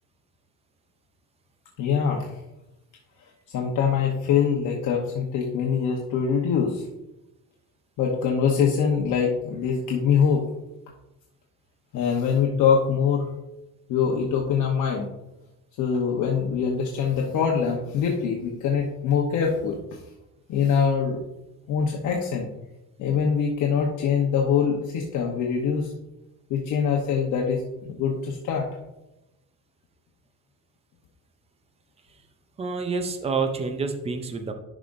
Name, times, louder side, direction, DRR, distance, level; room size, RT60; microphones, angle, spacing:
voice 1, 1.8-2.3 3.5-6.8 8.0-10.5 11.9-13.3 13.9-15.1 15.8-19.8 20.5-21.2 21.7-22.5 23.0-25.9 26.5-28.7, left 6 dB, 65° left, -1 dB, 1.0 m, -23 dB
voice 2, 32.6-34.5, right 4 dB, 20° right, 6 dB, 0.5 m, -28 dB
11.0 x 5.1 x 2.6 m, 0.94 s
cardioid pair, 180°, 33 cm